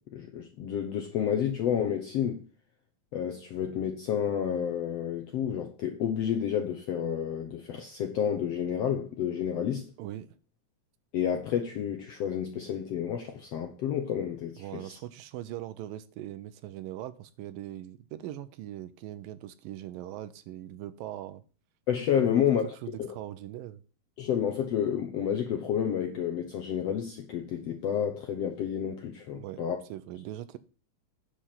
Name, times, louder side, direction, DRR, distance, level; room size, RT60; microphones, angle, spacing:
voice 1, 0.1-2.4 3.1-9.9 11.1-15.0 21.9-23.1 24.2-29.8, left 9 dB, 70° left, 1.5 m, -30 dB
voice 2, 14.6-21.4 22.3-22.4 22.8-23.8 29.3-30.6, right 13 dB, 80° right, 2.5 m, -41 dB
10.0 x 4.5 x 7.4 m
omnidirectional pair, 4.1 m